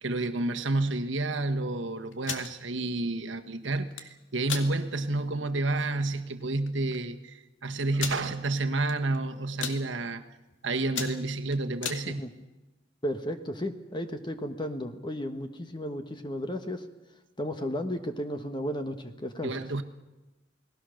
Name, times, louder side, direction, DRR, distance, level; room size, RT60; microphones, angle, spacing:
voice 1, 0.0-10.2 10.6-12.2 19.4-19.8, right 2 dB, 75° right, 6 dB, 1.5 m, -30 dB
sound 1, 2.1-2.5 3.7-4.1 4.5-4.7 5.2-5.3 5.6-5.9 6.7-6.8 6.9-7.0 8.0-8.2 8.9-9.2 9.4-9.8 10.4-10.5 10.8-12.0, left 6 dB, 80° left, 2.2 m, -34 dB
voice 2, 13.0-16.9 17.4-19.6, equal, 25° left, 7 dB, 1.3 m, -34 dB
29.5 x 19.5 x 6.5 m, 1.1 s
head